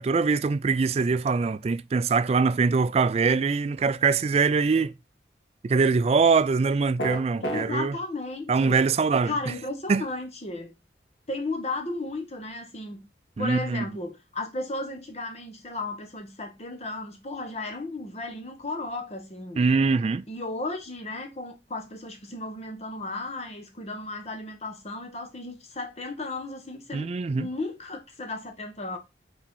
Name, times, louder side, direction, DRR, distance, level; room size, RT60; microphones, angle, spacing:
voice 1, 0.0-4.9 5.6-8.0 8.5-9.3 9.9-10.0 13.4-13.8 19.6-20.2 26.9-27.5, right 4 dB, 35° right, 0.3 m, -23 dB
sound 1, 7.0-7.7, right 1 dB, 90° left, 2.2 m, -29 dB
voice 2, 7.4-8.8 9.2-10.7 11.3-13.0 13.4-19.6 20.3-29.0, left 2 dB, 35° left, 1.2 m, -34 dB
4.9 x 4.3 x 5.3 m
head